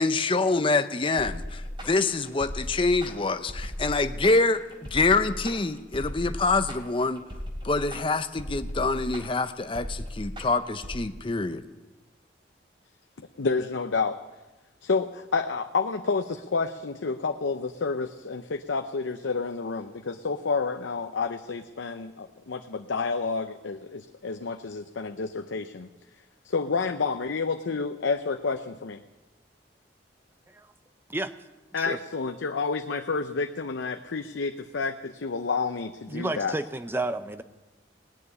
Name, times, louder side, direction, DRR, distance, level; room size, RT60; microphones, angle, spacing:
voice 1, 0.0-4.6 4.9-7.3 7.6-11.6, left 3 dB, 30° left, 10 dB, 0.6 m, -25 dB
sound 1, 1.2-11.0, equal, 30° right, 3.6 m, -37 dB
voice 2, 13.4-14.2 14.8-25.9 26.4-29.0 31.7-36.6, left 4 dB, 90° left, 7 dB, 0.6 m, -29 dB
voice 3, 36.1-37.4, right 2 dB, 10° right, 10 dB, 0.6 m, -31 dB
18.5 x 7.0 x 9.7 m, 1.1 s
head